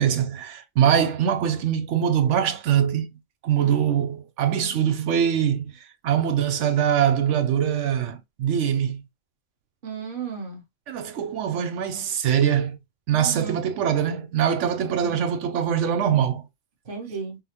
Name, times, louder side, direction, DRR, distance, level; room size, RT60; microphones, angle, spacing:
voice 1, 0.0-3.1 3.4-5.7 6.0-9.0 10.9-12.8 13.1-16.4, right 9 dB, 80° right, 1.0 m, -23 dB
voice 2, 9.8-10.6 13.1-13.6 14.9-15.2 16.9-17.4, right 5 dB, 50° right, 1.3 m, -35 dB
5.4 x 2.1 x 2.8 m
omnidirectional pair, 1.2 m